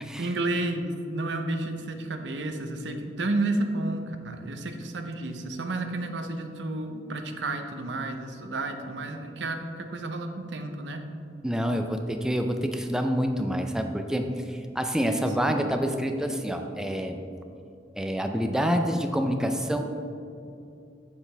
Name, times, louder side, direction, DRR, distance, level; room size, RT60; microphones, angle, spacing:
voice 1, 0.2-11.0 15.4-15.6, right 2 dB, 90° right, 6 dB, 0.7 m, -31 dB
voice 2, 11.4-17.2 18.0-19.8, equal, 5° right, 5 dB, 0.4 m, -27 dB
7.9 x 7.1 x 3.3 m, 2.6 s
head